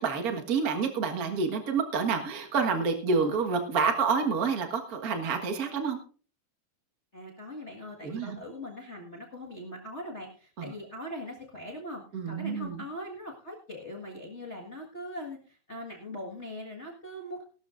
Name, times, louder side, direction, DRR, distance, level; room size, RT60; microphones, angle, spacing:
voice 1, 0.0-6.0 8.0-8.4 10.6-10.7 12.1-12.8, right 5 dB, 60° right, 5 dB, 0.9 m, -28 dB
voice 2, 7.1-17.4, left 1 dB, 45° left, -1 dB, 0.8 m, -41 dB
19.0 x 12.0 x 2.5 m, 0.40 s
omnidirectional pair, 4.1 m